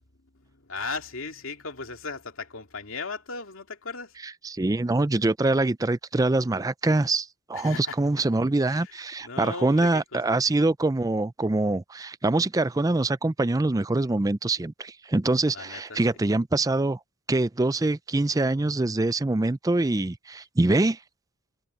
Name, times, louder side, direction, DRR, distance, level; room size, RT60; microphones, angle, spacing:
voice 1, 0.7-4.1 7.5-7.9 8.7-8.9 9.2-10.0 15.5-15.8, left 4 dB, 70° left, 2.5 m, -36 dB
voice 2, 4.2-17.0 17.3-21.0, right 2 dB, 15° right, 0.4 m, -24 dB
head